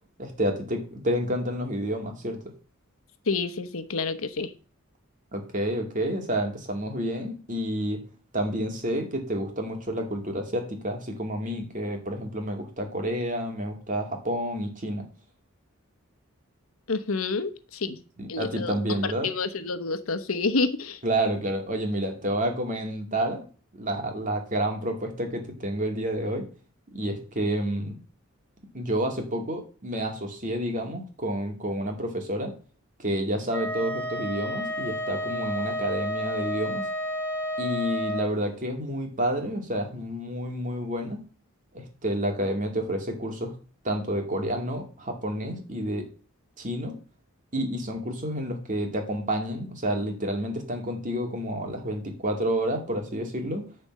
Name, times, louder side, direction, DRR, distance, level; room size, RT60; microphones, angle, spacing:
voice 1, 0.2-2.4 5.3-8.0 8.3-15.0 18.2-19.3 21.0-23.4 23.7-26.5 26.9-28.0 28.7-32.5 33.0-36.8 37.6-41.2 41.7-43.5 43.8-46.1 46.6-46.9 47.5-53.6, right 1 dB, 40° right, 3 dB, 2.4 m, -29 dB
voice 2, 3.3-4.5 16.9-17.9 18.3-21.0, left 3 dB, 80° left, 11 dB, 1.0 m, -29 dB
Wind instrument woodwind instrument, 33.5-38.3, equal, 5° left, 2.2 m, -31 dB
10.0 x 4.5 x 7.5 m, 0.39 s
head